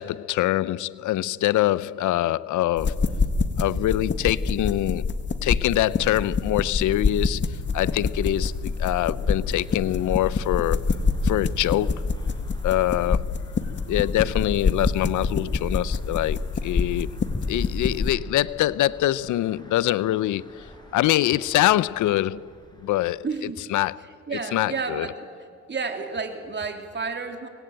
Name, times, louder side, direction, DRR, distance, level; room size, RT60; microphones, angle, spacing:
voice 1, 0.0-3.1 3.6-5.1 5.4-11.0 11.2-12.1 12.6-13.4 13.9-17.1 17.5-22.4 22.8-23.2 23.7-24.0 24.5-25.1, left 14 dB, 80° left, 0.6 m, -24 dB
sound 1, 2.8-18.1, left 4 dB, 40° left, 1.8 m, -26 dB
sound 2, 7.5-23.2, left 1 dB, 15° left, 5.7 m, -46 dB
voice 2, 23.2-23.6 24.3-25.3 25.7-27.5, right 4 dB, 35° right, 3.4 m, -31 dB
25.0 x 22.0 x 9.0 m
cardioid pair, 90°, 30 cm